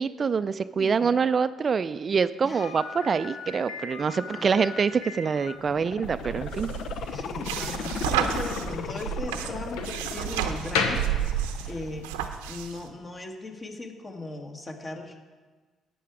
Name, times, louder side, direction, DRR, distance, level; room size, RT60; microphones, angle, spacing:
voice 1, 0.0-6.7, right 5 dB, 45° right, 13 dB, 0.4 m, -25 dB
voice 2, 0.8-1.3 2.4-2.7 4.1-4.7 7.1-12.1 12.5-15.2, left 2 dB, 35° left, 3 dB, 1.9 m, -39 dB
Slam, 2.6-11.9, left 4 dB, 80° left, 1.1 m, -36 dB
sound 1, 5.5-12.5 12.9-13.0, left 7 dB, 65° left, 0.6 m, -37 dB
sound 2, 6.0-12.8, right 10 dB, 85° right, 0.7 m, -31 dB
11.5 x 8.5 x 4.9 m, 1.4 s
hypercardioid pair, 50°, 0 cm